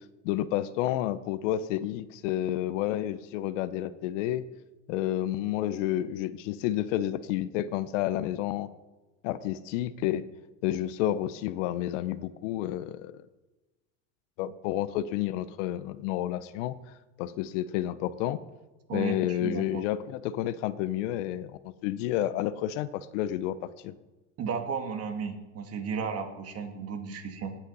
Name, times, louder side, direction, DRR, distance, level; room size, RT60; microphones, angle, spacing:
voice 1, 0.2-4.5 4.9-8.7 9.2-10.3 10.6-13.1 14.4-16.8 17.2-18.4 18.9-23.6 23.8-23.9, left 13 dB, 70° left, 15 dB, 0.8 m, -30 dB
voice 2, 18.9-19.8 24.4-27.5, right 5 dB, 40° right, 6 dB, 1.9 m, -34 dB
18.5 x 8.3 x 4.0 m, 1.1 s
supercardioid pair, 115°, 38 cm